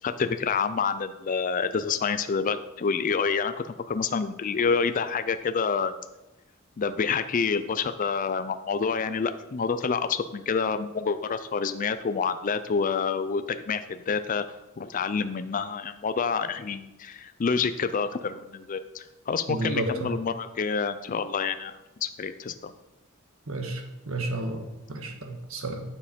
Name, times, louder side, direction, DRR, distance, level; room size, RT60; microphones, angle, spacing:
voice 1, 0.0-5.9 6.8-14.4 14.8-21.8 22.0-22.7, left 5 dB, 40° left, 10 dB, 0.4 m, -28 dB
voice 2, 19.5-20.1 23.5-25.8, right 2 dB, 70° right, 4 dB, 1.5 m, -32 dB
9.1 x 7.2 x 5.2 m, 1.0 s
head